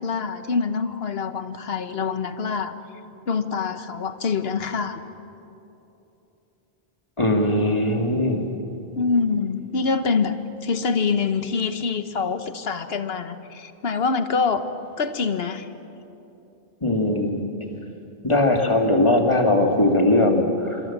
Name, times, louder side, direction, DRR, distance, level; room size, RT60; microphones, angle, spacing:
voice 1, 0.0-2.7 3.3-5.0 9.0-14.7 15.0-15.7, left 5 dB, 75° left, 10 dB, 1.3 m, -25 dB
voice 2, 7.2-8.4 16.8-17.4 18.2-20.8, left 1 dB, 30° left, 2 dB, 2.3 m, -20 dB
25.5 x 25.0 x 7.3 m, 3.0 s
omnidirectional pair, 1.0 m